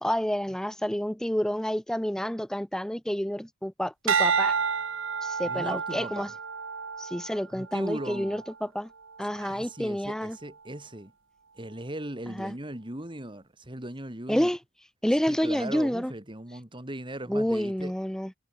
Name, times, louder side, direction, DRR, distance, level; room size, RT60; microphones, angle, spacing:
voice 1, 0.0-4.6 5.2-6.3 7.0-8.9 9.2-10.4 12.4-12.5 14.3-14.6 15.0-16.1 17.3-18.3, equal, 5° left, 0.6 m, -29 dB
sound 1, 4.1-8.5 9.1-9.5, right 5 dB, 70° right, 1.7 m, -30 dB
voice 2, 5.4-6.3 7.5-8.4 9.4-11.1 11.6-14.5 15.2-17.9, right 1 dB, 25° right, 2.5 m, -38 dB
head